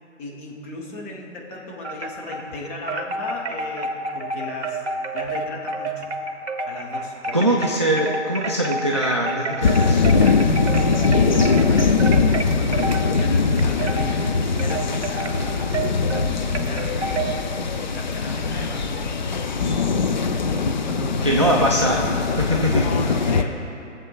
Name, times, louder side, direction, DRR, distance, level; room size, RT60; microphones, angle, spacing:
voice 1, 0.2-4.8 5.1-6.2 6.6-7.8 10.1-10.5 10.8-15.8 16.1-19.1 20.8-22.1 22.7-23.6, left 2 dB, 15° left, -3 dB, 0.9 m, -36 dB
Wind chime, 1.8-2.5 2.9-17.4, right 2 dB, 60° right, 0.8 m, -30 dB
voice 2, 7.3-10.1 21.2-22.0 22.4-23.1, right 1 dB, 25° right, -3 dB, 0.3 m, -22 dB
sound 1, 9.6-23.4, left 4 dB, 40° left, 0.4 m, -21 dB
22.0 x 7.5 x 2.4 m, 2.7 s
figure-of-eight pair, 130°, 38 cm